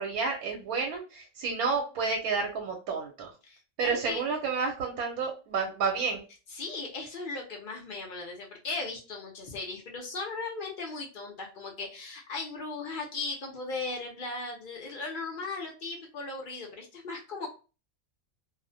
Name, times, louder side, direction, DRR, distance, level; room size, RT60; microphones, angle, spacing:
voice 1, 0.0-3.3 3.8-6.2, right 4 dB, 90° right, 1 dB, 1.1 m, -30 dB
voice 2, 3.4-4.2 6.5-17.5, left 3 dB, 60° left, 1 dB, 0.5 m, -37 dB
2.4 x 2.0 x 2.5 m, 0.34 s
omnidirectional pair, 1.5 m